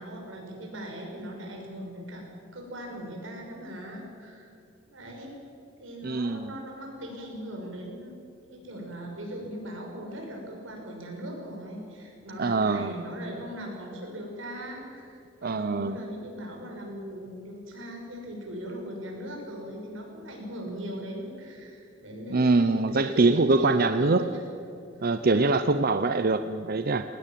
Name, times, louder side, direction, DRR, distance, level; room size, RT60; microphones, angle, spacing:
voice 1, 0.0-2.2 2.5-4.6 4.9-5.3 5.8-8.1 8.5-24.5 25.3-25.7, equal, 85° right, 0 dB, 6.1 m, -39 dB
voice 2, 6.0-6.5 12.4-12.9 15.4-16.0 22.3-24.2 25.0-27.0, right 3 dB, 50° right, 10 dB, 0.7 m, -23 dB
20.5 x 19.0 x 7.6 m, 2.6 s
head